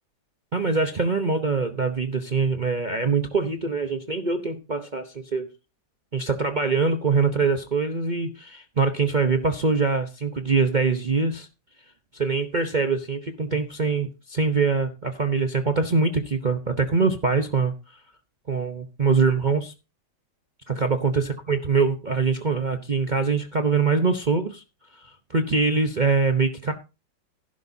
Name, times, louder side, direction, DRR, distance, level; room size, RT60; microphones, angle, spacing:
voice 1, 0.5-5.5 6.1-11.5 12.1-17.7 18.5-19.7 20.7-24.6 24.9-26.7, right 4 dB, 35° right, 6 dB, 0.9 m, -23 dB
15.0 x 11.5 x 2.8 m, 0.28 s
omnidirectional pair, 1.9 m